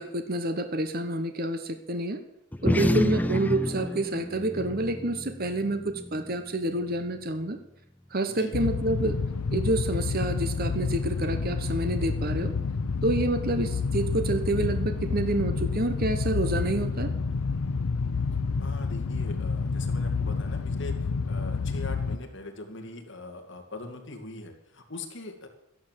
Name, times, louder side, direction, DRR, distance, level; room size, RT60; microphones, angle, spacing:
voice 1, 0.0-2.2 2.6-7.6 8.1-9.2 9.5-12.5 13.0-17.1, right 2 dB, 40° right, 8 dB, 1.1 m, -28 dB
sound 1, 2.5-7.3, left 1 dB, 5° left, 0.5 m, -30 dB
sound 2, 8.5-22.2, left 4 dB, 85° left, 0.6 m, -29 dB
voice 2, 18.6-25.5, left 2 dB, 55° left, 3 dB, 2.4 m, -41 dB
14.0 x 11.0 x 7.5 m, 0.82 s
head